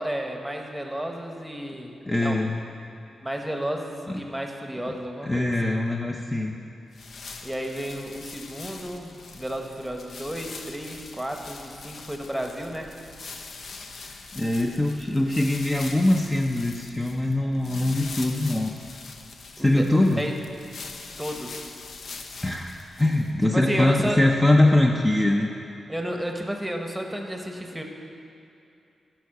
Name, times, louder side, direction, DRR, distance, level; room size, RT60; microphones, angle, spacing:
voice 1, 0.0-2.4 3.2-5.8 7.4-12.9 19.6-20.3 21.2-21.6 23.5-24.2 25.9-27.8, equal, 5° right, 2 dB, 1.0 m, -32 dB
voice 2, 2.1-2.6 4.1-4.2 5.3-6.5 14.3-18.7 19.6-20.2 22.4-25.5, left 1 dB, 15° left, 0 dB, 0.6 m, -22 dB
sound 1, 6.9-23.4, left 4 dB, 60° left, 0.7 m, -42 dB
13.5 x 4.6 x 6.6 m, 2.8 s
cardioid pair, 95°, 0 cm